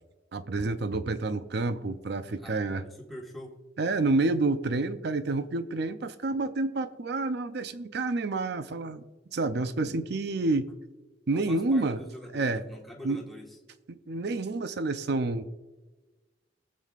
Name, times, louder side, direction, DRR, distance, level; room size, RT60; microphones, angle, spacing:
voice 1, 0.3-2.9 3.8-9.1 9.3-10.7 11.3-12.0 12.3-12.6 13.0-13.2 13.9-15.5, right 3 dB, 60° right, 11 dB, 0.5 m, -29 dB
voice 2, 2.4-3.6 11.3-13.6, equal, ahead, -2 dB, 1.4 m, -45 dB
21.0 x 7.4 x 2.5 m, 1.2 s
head